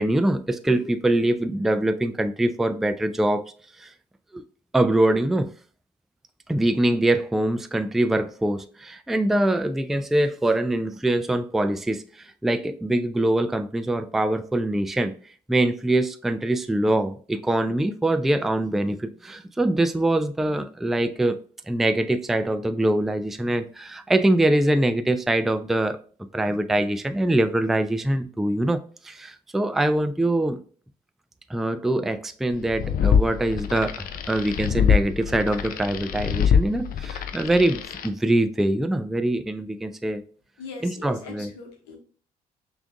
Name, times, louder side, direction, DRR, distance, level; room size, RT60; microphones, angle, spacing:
voice 1, 0.0-3.4 3.8-3.9 4.3-4.4 4.7-5.5 6.5-15.2 15.5-21.4 21.7-26.0 26.3-30.6 31.5-40.2 40.8-41.5, right 1 dB, ahead, 0.3 m, -23 dB
sound 1, 32.6-38.1, left 7 dB, 55° left, 0.5 m, -24 dB
voice 2, 40.6-42.0, left 4 dB, 70° left, 0.9 m, -40 dB
5.6 x 2.5 x 2.4 m
hypercardioid pair, 45°, 18 cm